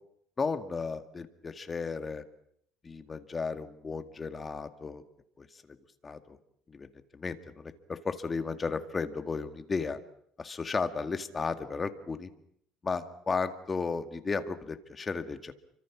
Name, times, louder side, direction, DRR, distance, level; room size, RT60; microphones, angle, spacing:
voice 1, 0.4-2.2 2.8-5.0 5.4-5.5 6.0-6.4 6.7-6.9 7.1-10.0 10.4-12.3 12.8-15.5, left 4 dB, 25° left, 9 dB, 2.0 m, -34 dB
29.5 x 25.0 x 6.2 m, 0.69 s
cardioid pair, 125°, 0 cm